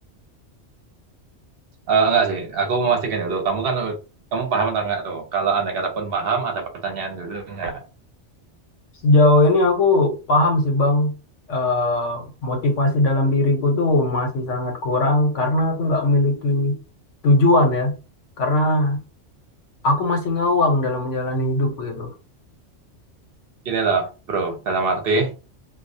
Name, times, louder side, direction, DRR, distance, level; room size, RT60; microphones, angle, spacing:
voice 1, 1.9-4.0 4.3-7.8 23.7-25.3, right 4 dB, 60° right, 0.8 m, -23 dB
voice 2, 9.0-11.1 11.5-16.8 17.2-18.0 18.4-19.0 19.8-22.1, left 2 dB, 85° left, 1.1 m, -19 dB
2.3 x 2.0 x 2.6 m
omnidirectional pair, 1.2 m